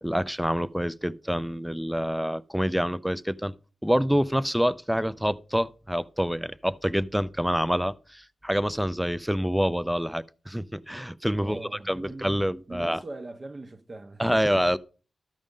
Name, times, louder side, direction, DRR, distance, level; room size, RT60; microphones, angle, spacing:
voice 1, 0.0-3.5 3.8-13.0 14.2-14.8, equal, 5° right, 0.4 m, -27 dB
voice 2, 11.4-12.4 12.7-14.8, right 2 dB, 30° right, 0.7 m, -41 dB
13.0 x 5.1 x 3.7 m
wide cardioid pair, 100°, 0 cm